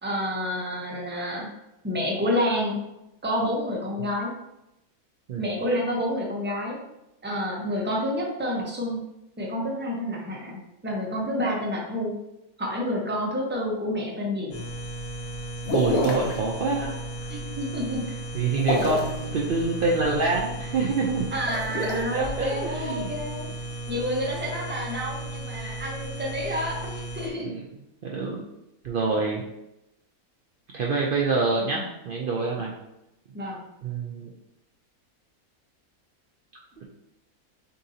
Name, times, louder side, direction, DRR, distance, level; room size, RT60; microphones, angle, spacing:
voice 1, 0.0-1.5 1.8-2.8 3.2-4.3 5.4-6.8 7.2-9.0 9.4-12.1 12.6-14.6 17.3-18.0 21.3-23.5 23.9-27.5 31.6-31.9 33.3-33.6, equal, 10° right, -3 dB, 0.6 m, -29 dB
sound 1, 14.5-27.3, right 1 dB, 75° left, 1.5 m, -35 dB
sound 2, 15.7-16.4 18.6-19.2 21.3-21.9, left 2 dB, 55° left, 0.9 m, -27 dB
voice 2, 15.7-16.9 18.3-21.3 21.8-23.1 27.4-27.6 28.0-28.4 28.8-29.4 30.7-32.7 33.8-34.3 36.8-36.9, right 3 dB, 80° right, -2 dB, 0.4 m, -26 dB
6.6 x 2.7 x 2.8 m, 0.89 s
omnidirectional pair, 1.6 m